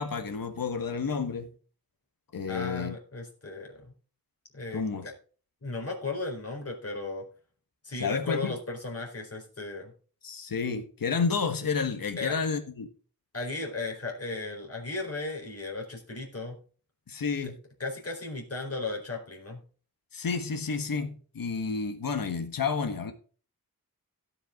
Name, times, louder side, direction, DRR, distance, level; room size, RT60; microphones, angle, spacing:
voice 1, 0.0-1.5 2.3-3.0 4.7-5.1 7.9-8.5 10.2-12.9 17.1-17.6 20.1-23.1, left 5 dB, 65° left, 1.6 m, -30 dB
voice 2, 2.5-3.9 4.5-5.1 5.6-7.3 7.8-9.9 12.2-12.3 13.3-16.6 17.8-19.6, left 3 dB, 40° left, 4.3 m, -36 dB
17.0 x 5.8 x 3.8 m
wide cardioid pair, 95°, 37 cm